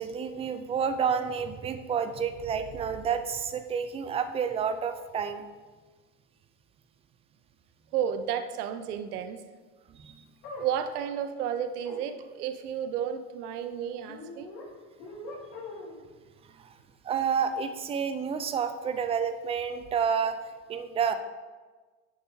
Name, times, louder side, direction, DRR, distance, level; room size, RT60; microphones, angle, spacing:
voice 1, 0.0-5.5 9.9-10.3 16.5-16.7 17.0-20.4 20.7-21.1, right 7 dB, 15° right, 9 dB, 0.3 m, -29 dB
voice 2, 7.9-9.4 10.6-14.5, right 8 dB, 80° right, 10 dB, 0.8 m, -32 dB
sound 1, 10.4-10.7 11.8-12.0 14.1-14.7 15.0-16.0, left 2 dB, 75° left, 2.7 m, -41 dB
11.0 x 6.9 x 2.7 m, 1.4 s
hypercardioid pair, 100°, 45 cm